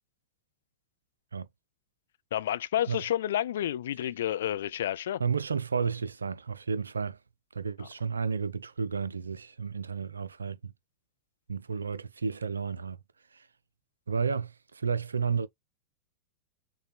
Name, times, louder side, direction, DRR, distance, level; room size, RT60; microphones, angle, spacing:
voice 1, 2.3-5.2 7.8-7.9, left 11 dB, 60° left, 0.3 m, -30 dB
voice 2, 5.2-7.2 7.5-10.7 11.5-13.0 13.3-13.5 14.1-15.5, right 5 dB, 75° right, 0.4 m, -32 dB
6.5 x 2.2 x 3.1 m
figure-of-eight pair, 90°, 0 cm